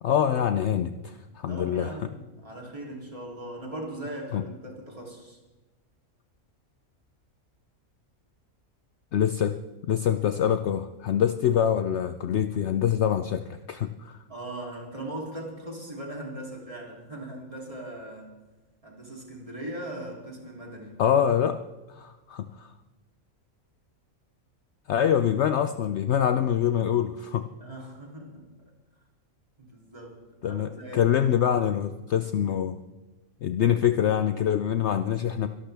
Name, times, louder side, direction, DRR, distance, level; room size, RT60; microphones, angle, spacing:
voice 1, 0.0-1.9 4.3-4.4 9.1-9.6 9.9-14.2 21.0-21.6 21.9-22.7 24.9-27.5 30.4-32.8 33.4-35.5, left 9 dB, 65° left, 9 dB, 0.8 m, -25 dB
voice 2, 1.5-5.4 14.3-18.3 18.8-21.0 27.6-28.7 29.6-30.2 30.4-31.3, right 1 dB, 25° right, -2 dB, 3.2 m, -39 dB
25.5 x 12.0 x 3.4 m, 1.1 s
omnidirectional pair, 1.5 m